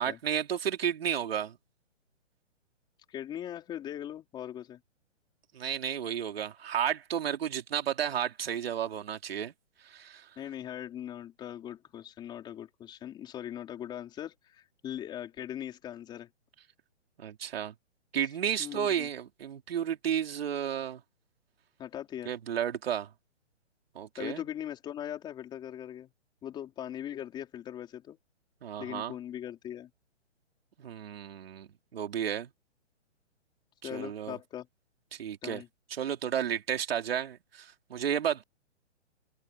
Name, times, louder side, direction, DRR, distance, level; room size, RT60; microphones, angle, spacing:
voice 1, 0.0-1.5 5.5-9.5 9.8-10.3 17.2-17.7 18.1-21.0 22.3-23.1 24.0-24.4 28.6-29.1 30.8-32.5 33.8-34.4 35.1-35.6 35.9-38.4, right 9 dB, 55° right, 3.4 m, -32 dB
voice 2, 3.1-4.8 10.4-16.3 18.6-19.1 21.8-22.3 24.2-26.1 26.4-28.2 28.8-29.9 33.8-34.7 35.4-35.7, left 10 dB, 10° left, 4.4 m, -40 dB
open air
hypercardioid pair, 165°, 36 cm